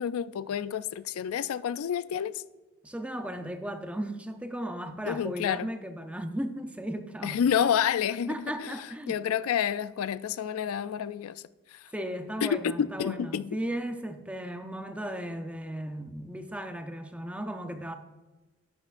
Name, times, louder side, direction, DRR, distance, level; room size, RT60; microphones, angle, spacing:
voice 1, 0.0-2.4 5.0-5.7 7.2-11.4 11.7-11.9 12.4-13.6, left 8 dB, 80° left, 0.3 m, -29 dB
voice 2, 2.8-7.4 8.3-9.2 11.9-17.9, right 1 dB, 5° right, 0.5 m, -36 dB
12.0 x 9.8 x 2.5 m
head